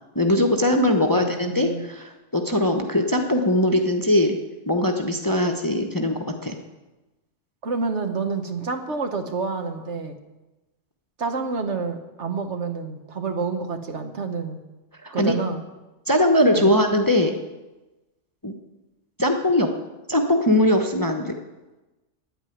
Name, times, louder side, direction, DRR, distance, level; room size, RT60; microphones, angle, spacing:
voice 1, 0.1-4.4 4.7-6.6 15.0-15.3 16.1-17.4 18.4-18.5 19.2-19.7 20.1-21.3, left 1 dB, 15° left, 4 dB, 0.9 m, -21 dB
voice 2, 1.1-1.9 7.6-10.2 11.2-14.6 15.1-15.6 16.5-16.8, right 4 dB, 60° right, 6 dB, 1.5 m, -28 dB
11.0 x 9.0 x 9.2 m, 1.1 s
omnidirectional pair, 1.3 m